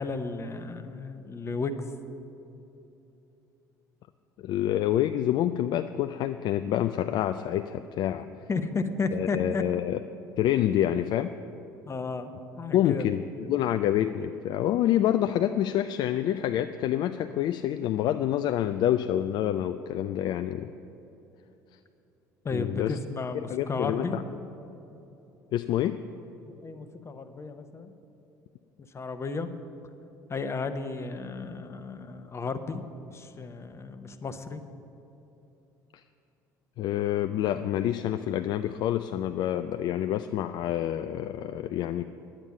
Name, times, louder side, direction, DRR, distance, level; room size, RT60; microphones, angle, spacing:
voice 1, 0.0-1.9 8.5-9.6 11.9-12.3 12.6-13.0 22.4-24.2 26.4-27.9 28.9-29.5 30.3-32.8 33.1-34.6, left 4 dB, 25° left, 10 dB, 0.9 m, -33 dB
voice 2, 4.4-8.3 9.1-10.0 10.4-11.4 12.7-13.2 13.5-20.7 22.5-23.0 23.3-24.2 25.5-26.0 36.8-42.0, left 11 dB, 45° left, 9 dB, 0.4 m, -27 dB
10.5 x 8.8 x 7.2 m, 3.0 s
figure-of-eight pair, 60°, 10 cm